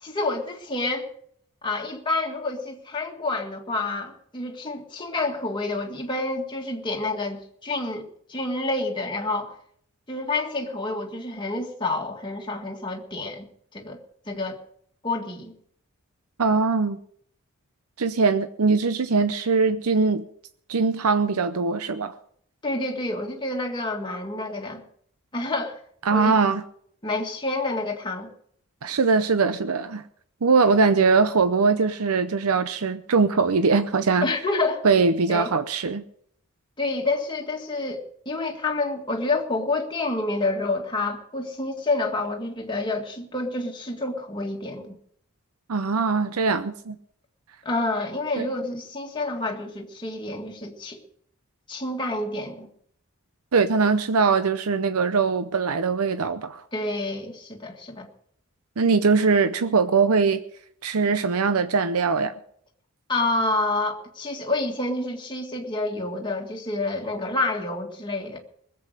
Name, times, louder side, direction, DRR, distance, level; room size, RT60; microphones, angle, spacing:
voice 1, 0.0-1.1 1.6-9.6 10.1-13.5 13.7-14.0 14.3-14.6 15.0-15.5 22.6-24.8 25.3-25.8 26.1-26.4 27.0-28.3 34.2-34.9 35.3-35.5 36.8-44.9 47.6-51.0 51.7-52.7 56.7-58.1 63.1-68.4, left 2 dB, 20° left, 1.9 m, -28 dB
voice 2, 16.4-17.0 18.0-20.3 20.7-22.1 26.0-26.6 28.8-30.0 30.4-34.3 34.8-36.0 45.7-47.0 48.4-48.5 53.5-56.6 58.8-60.4 60.8-62.3, right 4 dB, 85° right, 0.7 m, -21 dB
20.0 x 7.9 x 6.5 m
head